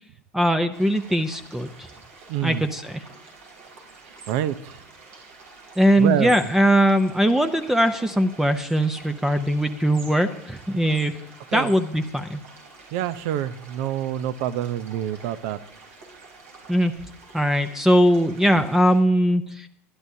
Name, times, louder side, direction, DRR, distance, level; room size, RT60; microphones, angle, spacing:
voice 1, 0.3-1.7 2.4-2.9 5.8-11.1 11.5-12.4 16.7-16.9 17.3-19.7, equal, 5° right, 9 dB, 0.6 m, -20 dB
sound 1, 0.7-19.0, right 4 dB, 85° right, 3.9 m, -47 dB
voice 2, 2.3-2.7 4.3-4.8 6.0-6.5 11.5-11.7 12.9-15.6, right 11 dB, 65° right, 14 dB, 0.7 m, -27 dB
22.5 x 10.5 x 2.8 m, 0.67 s
supercardioid pair, 110°, 8 cm